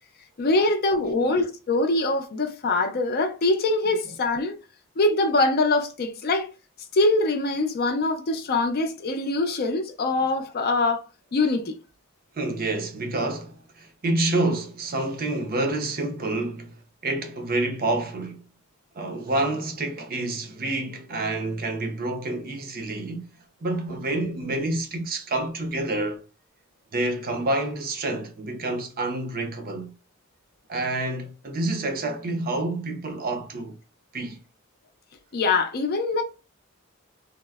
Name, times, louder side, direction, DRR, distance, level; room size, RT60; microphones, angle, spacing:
voice 1, 0.4-4.5 5.0-6.5 6.9-11.0 11.3-11.8 35.3-36.2, left 2 dB, 45° left, 0.5 m, -23 dB
voice 2, 1.0-1.4 10.2-10.3 12.3-18.4 18.9-23.2 23.6-26.2 26.9-29.9 30.7-33.8 34.1-34.4, right 2 dB, 45° right, 0.6 m, -28 dB
3.4 x 2.0 x 2.2 m
head